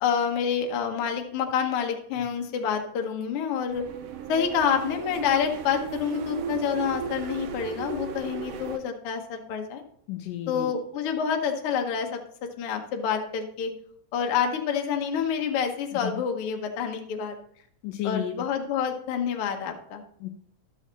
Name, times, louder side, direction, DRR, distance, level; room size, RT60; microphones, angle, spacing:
voice 1, 0.0-3.8 4.3-9.8 10.5-12.2 12.6-13.7 14.1-17.4 18.0-20.0, left 7 dB, 65° left, 3 dB, 1.5 m, -28 dB
sound 1, 3.7-8.8, right 7 dB, 80° right, 1.4 m, -35 dB
voice 2, 10.1-10.7 15.9-16.1 17.8-18.5 20.2-20.3, left 12 dB, 85° left, 6 dB, 1.5 m, -32 dB
12.0 x 6.4 x 4.0 m, 0.66 s
omnidirectional pair, 3.6 m